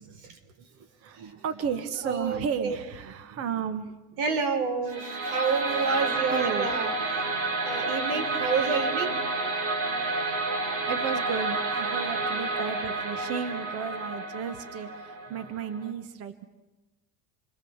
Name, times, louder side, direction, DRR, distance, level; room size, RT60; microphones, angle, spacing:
voice 1, 0.0-4.0 5.0-5.5 6.3-6.7 10.9-16.4, right 7 dB, 45° right, 11 dB, 1.4 m, -34 dB
voice 2, 2.0-2.8 4.2-7.4 7.6-9.2, right 5 dB, 85° right, 7 dB, 4.1 m, -29 dB
sound 1, 4.9-15.9, right 3 dB, 65° right, 3.4 m, -30 dB
28.0 x 23.0 x 7.2 m, 1.1 s
cardioid pair, 165°, 33 cm